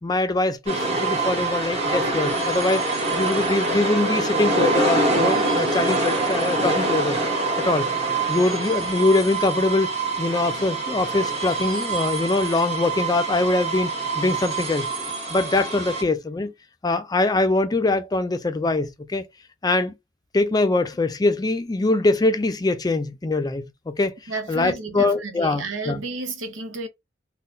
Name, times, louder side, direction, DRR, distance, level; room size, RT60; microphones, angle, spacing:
voice 1, 0.0-7.2 7.6-7.9 8.3-9.9 10.2-13.9 14.2-14.9 15.3-16.5 16.8-19.3 19.6-19.9 20.3-24.1 24.5-26.0, left 2 dB, 20° left, 0.4 m, -23 dB
sound 1, 0.7-16.0, right 2 dB, 35° right, 1.2 m, -25 dB
voice 2, 24.3-26.9, right 3 dB, 85° right, 0.9 m, -32 dB
3.8 x 2.2 x 2.6 m
head